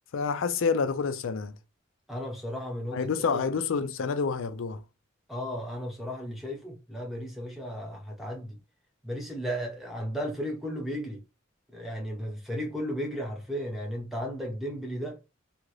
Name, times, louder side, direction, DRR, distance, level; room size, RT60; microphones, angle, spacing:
voice 1, 0.1-1.5 2.9-4.8, left 5 dB, 75° left, 0.4 m, -28 dB
voice 2, 2.1-3.5 5.3-8.6 9.0-11.2 11.7-15.2, equal, ahead, 0.9 m, -35 dB
2.8 x 2.4 x 3.1 m
head